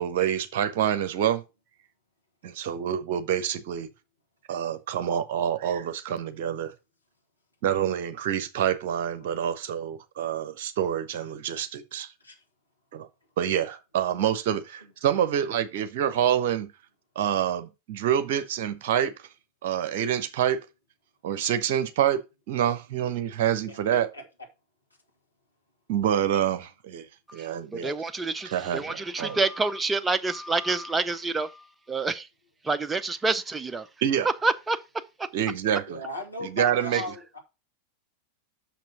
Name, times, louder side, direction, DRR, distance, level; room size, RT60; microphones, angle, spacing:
voice 1, 0.0-1.4 2.4-3.9 4.5-6.7 7.6-12.1 12.9-13.1 13.4-16.7 17.1-19.1 19.6-20.6 21.2-22.2 22.5-24.1 25.9-27.1 27.3-27.9 28.4-29.4 34.0-34.3 35.3-36.0 36.4-37.1, right 9 dB, 50° right, 1.0 m, -27 dB
voice 2, 23.5-23.8 24.1-24.2 35.9-37.4, left 2 dB, 80° left, 2.2 m, -37 dB
voice 3, 27.8-31.5 31.9-32.2 32.7-33.8 34.4-34.8, right 3 dB, 10° right, 0.6 m, -27 dB
6.2 x 6.0 x 5.7 m
figure-of-eight pair, 90°, 0 cm